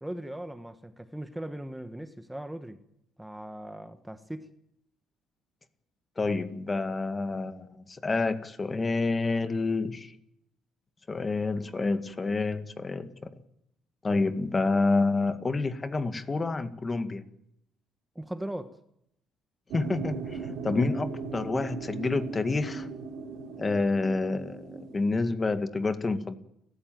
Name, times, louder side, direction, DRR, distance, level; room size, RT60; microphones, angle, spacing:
voice 1, 0.0-2.8 3.2-4.5 18.1-18.8, right 1 dB, 5° right, 1.4 m, -39 dB
voice 2, 6.2-10.1 11.1-13.3 14.0-17.2 19.7-22.9 23.6-26.4, left 3 dB, 25° left, 1.9 m, -28 dB
sound 1, 19.7-25.2, right 5 dB, 80° right, 4.2 m, -38 dB
30.0 x 14.0 x 9.3 m
cardioid pair, 110°, 0 cm